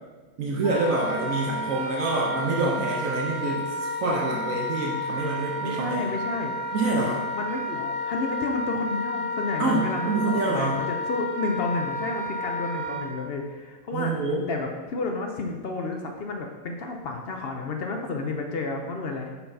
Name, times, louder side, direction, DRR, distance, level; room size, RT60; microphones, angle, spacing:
voice 1, 0.4-6.1 6.7-7.2 9.6-10.7 13.9-14.5, right 3 dB, 75° right, -2 dB, 1.2 m, -27 dB
Wind instrument woodwind instrument, 0.6-13.1, left 1 dB, 5° right, 1.4 m, -31 dB
voice 2, 5.6-6.5 7.3-14.1 14.5-19.3, left 3 dB, 55° left, 3 dB, 0.7 m, -31 dB
6.8 x 5.7 x 2.7 m, 1.4 s
omnidirectional pair, 1.5 m